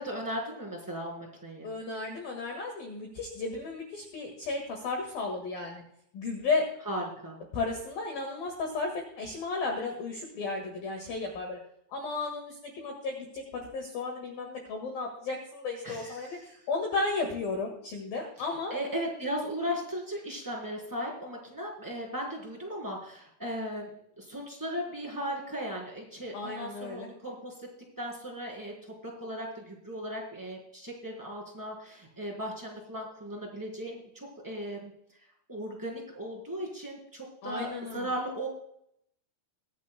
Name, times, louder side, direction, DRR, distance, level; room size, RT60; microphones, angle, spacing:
voice 1, 0.0-1.7 6.8-7.4 15.8-16.4 18.7-27.7 28.0-28.7 29.0-34.9 35.5-38.5, equal, 5° right, -3 dB, 3.0 m, -37 dB
voice 2, 1.6-5.8 6.1-6.6 7.5-11.6 11.9-18.7 26.3-27.1 37.4-38.1, left 3 dB, 60° left, 2 dB, 2.9 m, -34 dB
23.5 x 9.3 x 2.2 m, 0.71 s
omnidirectional pair, 5.9 m